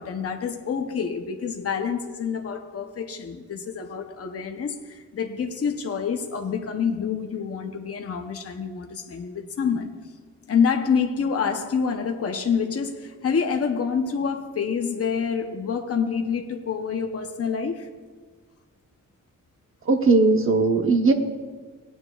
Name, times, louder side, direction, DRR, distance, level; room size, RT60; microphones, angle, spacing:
voice 1, 0.0-10.0 10.5-17.9, left 6 dB, 50° left, 4 dB, 0.8 m, -27 dB
voice 2, 19.8-21.1, right 3 dB, 40° right, 5 dB, 0.9 m, -18 dB
18.0 x 9.4 x 2.4 m, 1.5 s
wide cardioid pair, 160°, 32 cm